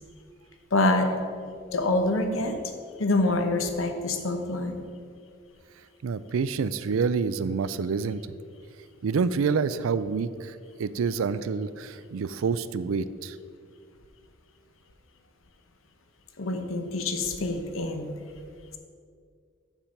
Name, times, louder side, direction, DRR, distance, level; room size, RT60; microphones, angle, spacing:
voice 1, 0.7-1.1 1.7-2.6 3.0-4.7 16.4-18.1, left 2 dB, 85° left, 6 dB, 0.9 m, -26 dB
voice 2, 6.0-8.2 9.0-13.4, right 5 dB, 90° right, 15 dB, 0.4 m, -27 dB
7.3 x 7.2 x 5.2 m, 2.2 s
head